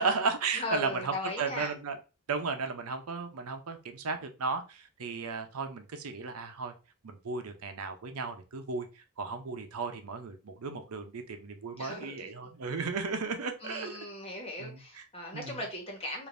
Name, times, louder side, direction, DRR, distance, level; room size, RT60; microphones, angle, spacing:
voice 1, 0.0-2.0 2.3-6.7 7.0-8.9 9.2-14.0 14.6-15.0 15.3-15.6, right 4 dB, 90° right, 0.6 m, -34 dB
voice 2, 0.5-1.7 11.8-12.3 13.6-16.3, left 2 dB, 25° left, 1.3 m, -38 dB
5.0 x 2.6 x 2.5 m
head